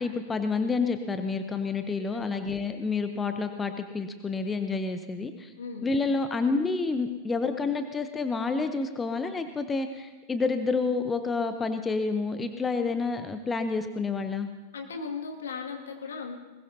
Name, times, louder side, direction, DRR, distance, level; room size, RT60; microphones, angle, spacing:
voice 1, 0.0-5.5 5.8-14.5, left 4 dB, 15° left, 8 dB, 0.8 m, -29 dB
voice 2, 2.1-2.5 5.6-5.9 14.7-16.4, left 5 dB, 65° left, 2 dB, 2.2 m, -37 dB
21.0 x 20.5 x 2.8 m, 1.2 s
figure-of-eight pair, 90°, 0 cm